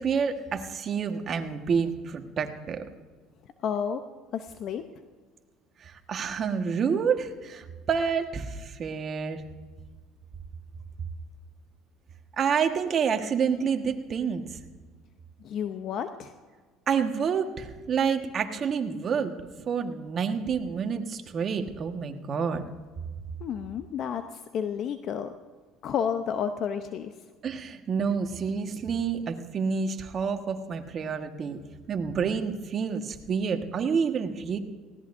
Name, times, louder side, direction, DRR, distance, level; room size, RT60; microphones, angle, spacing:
voice 1, 0.0-2.8 5.8-9.4 12.4-14.6 16.9-19.3 19.6-22.6 27.4-31.6 31.9-34.6, right 6 dB, 45° right, 6 dB, 1.5 m, -28 dB
voice 2, 3.6-4.0 4.3-4.8 15.4-16.3 23.4-25.3 25.8-27.1, left 8 dB, 55° left, 9 dB, 0.7 m, -31 dB
19.0 x 16.5 x 2.7 m, 1.4 s
supercardioid pair, 85°, 0 cm